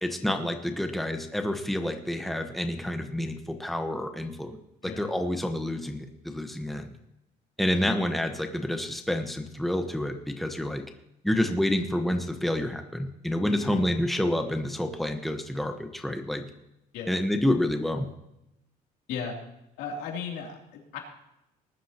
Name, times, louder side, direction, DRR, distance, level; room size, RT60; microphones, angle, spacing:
voice 1, 0.0-4.6 4.8-6.9 7.6-10.8 11.2-16.4 17.1-18.1, left 1 dB, ahead, 5 dB, 1.2 m, -28 dB
voice 2, 13.6-13.9 16.9-17.1 19.1-19.4 19.8-21.0, left 6 dB, 90° left, 0 dB, 3.1 m, -36 dB
19.5 x 11.0 x 3.0 m, 0.86 s
cardioid pair, 110°, 17 cm